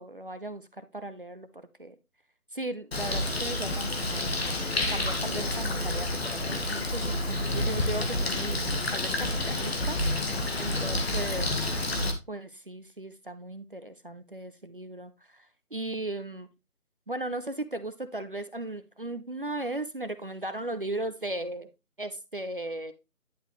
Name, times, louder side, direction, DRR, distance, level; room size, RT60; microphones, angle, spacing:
voice 1, 0.0-2.0 2.5-4.4 4.9-11.5 12.3-16.5 17.1-21.7 22.0-22.9, right 2 dB, 40° right, 11 dB, 0.6 m, -37 dB
Bird, 2.9-12.1, left 2 dB, 45° left, 1.6 m, -29 dB
10.5 x 5.5 x 3.1 m, 0.25 s
figure-of-eight pair, 160°, 43 cm